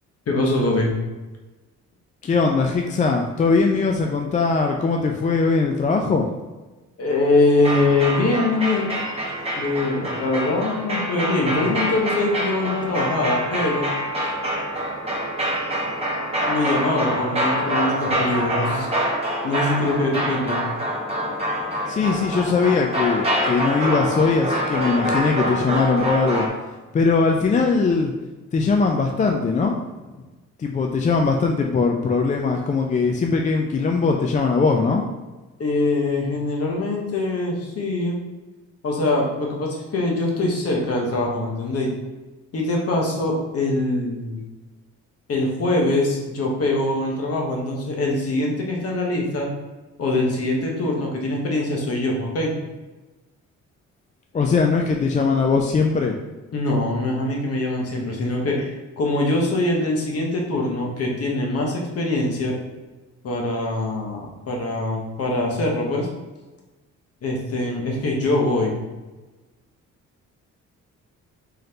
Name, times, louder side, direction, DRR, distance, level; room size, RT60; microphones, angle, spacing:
voice 1, 0.3-0.9 7.0-8.9 9.6-13.9 16.5-18.9 19.4-20.6 35.6-38.2 38.8-41.9 42.5-44.4 45.3-49.5 50.0-52.5 56.5-58.7 59.0-62.5 63.2-66.1 67.2-68.8, left 2 dB, 50° left, -1 dB, 1.1 m, -23 dB
voice 2, 2.2-6.3 21.9-26.5 26.9-28.1 28.5-29.8 30.6-35.0 54.3-56.2, left 4 dB, 25° left, 2 dB, 0.4 m, -20 dB
sound 1, 7.6-26.5, equal, 20° right, 1.1 m, -25 dB
3.9 x 3.2 x 2.8 m, 1.2 s
cardioid pair, 90°, 30 cm